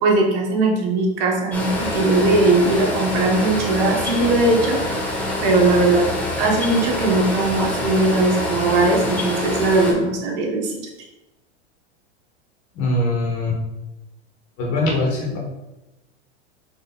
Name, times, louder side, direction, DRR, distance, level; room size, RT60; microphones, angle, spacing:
voice 1, 0.0-4.8 5.4-6.1 6.4-10.9, right 2 dB, 55° right, 0 dB, 1.4 m, -19 dB
sound 1, 1.5-9.9, left 1 dB, 5° left, 0.9 m, -25 dB
voice 2, 12.7-13.6 14.6-15.4, left 2 dB, 50° left, -1 dB, 1.5 m, -22 dB
4.4 x 2.9 x 4.1 m, 0.98 s
hypercardioid pair, 120°, 34 cm